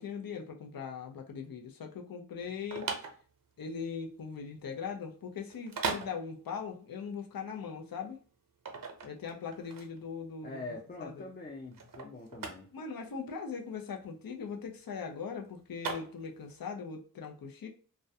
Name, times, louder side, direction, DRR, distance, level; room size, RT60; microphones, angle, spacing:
voice 1, 0.0-2.9 3.6-8.2 9.0-10.6 11.0-11.3 12.7-17.7, left 6 dB, 90° left, 3 dB, 0.5 m, -40 dB
sound 1, 2.4-16.6, right 4 dB, 70° right, 0.6 m, -41 dB
voice 2, 10.4-12.7, left 2 dB, 30° left, 0 dB, 0.4 m, -44 dB
2.4 x 2.1 x 2.6 m, 0.40 s
wide cardioid pair, 60°, 34 cm